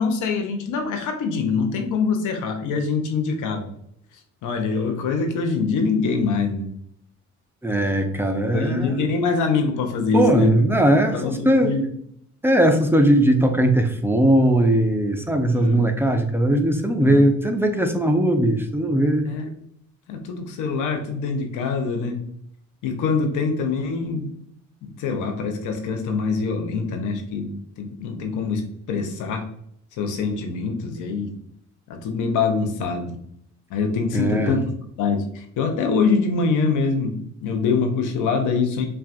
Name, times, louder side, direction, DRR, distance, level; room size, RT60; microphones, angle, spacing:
voice 1, 0.0-3.7 4.4-6.7 8.5-10.6 11.1-11.9 15.5-15.9 17.0-17.2 19.2-19.5 20.1-22.2 22.8-24.3 24.8-29.5 30.0-31.3 31.9-33.2 33.7-34.7 35.0-38.9, left 4 dB, 90° left, 5 dB, 0.8 m, -24 dB
voice 2, 7.6-9.0 10.1-11.7 12.4-19.3 34.1-34.6, right 1 dB, 10° right, 4 dB, 0.5 m, -19 dB
5.7 x 2.4 x 2.5 m, 0.70 s
cardioid pair, 90°, 30 cm